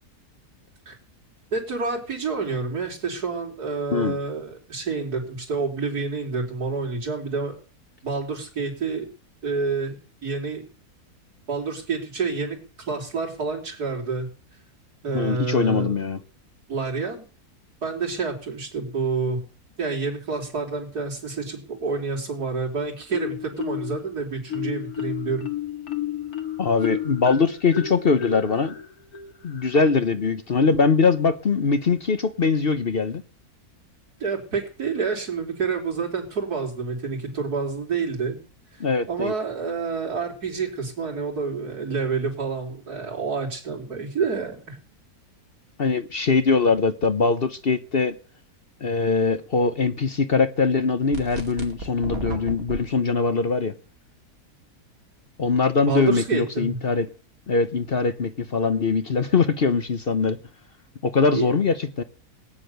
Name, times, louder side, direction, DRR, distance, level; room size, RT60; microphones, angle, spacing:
voice 1, 1.5-7.6 8.0-9.1 9.4-10.0 10.2-10.6 11.5-12.6 12.9-14.3 15.0-15.9 16.7-17.3 17.8-19.4 19.8-25.5 34.2-38.4 39.1-44.8 55.9-56.8 61.3-61.5, right 4 dB, 85° right, 4.3 m, -28 dB
voice 2, 15.1-16.2 26.6-28.7 29.4-33.2 38.8-39.3 45.8-48.1 48.8-53.7 55.4-57.1 57.5-60.4 61.0-62.0, left 4 dB, 45° left, 1.0 m, -22 dB
Marimba xylophone, 23.1-24.0 24.5-30.0, left 9 dB, 75° left, 2.3 m, -32 dB
sound 1, 51.1-52.8, right 2 dB, 65° right, 2.8 m, -33 dB
18.5 x 9.8 x 6.7 m
omnidirectional pair, 1.6 m